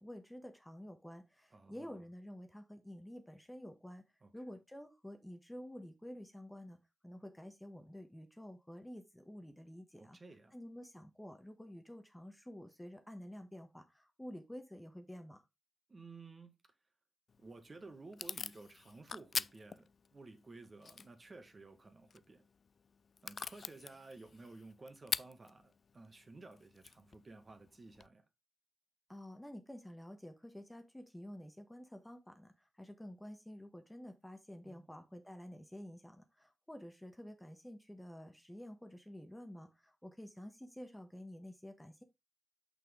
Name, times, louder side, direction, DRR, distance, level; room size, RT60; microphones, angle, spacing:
voice 1, 0.0-4.0 4.3-6.8 7.0-10.2 10.5-15.4 29.1-42.0, equal, 10° left, 1.3 m, -50 dB
voice 2, 1.5-2.0 4.2-4.3 10.0-10.5 15.9-16.5 17.4-22.5 23.2-28.2 34.6-34.9, right 3 dB, 40° right, 1.7 m, -54 dB
Packing tape duct tape / Tearing, 17.3-28.1, left 5 dB, 55° left, 0.3 m, -46 dB
6.0 x 5.9 x 3.7 m
cardioid pair, 75°, 0 cm